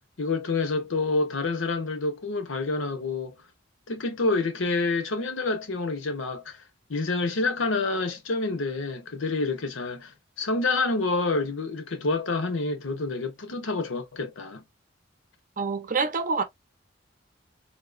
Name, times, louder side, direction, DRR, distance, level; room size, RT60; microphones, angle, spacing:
voice 1, 0.2-3.4 3.9-6.6 6.9-14.6, left 3 dB, 85° left, 0.9 m, -28 dB
voice 2, 15.6-16.4, right 4 dB, 40° right, 0.6 m, -26 dB
3.6 x 2.8 x 2.5 m
head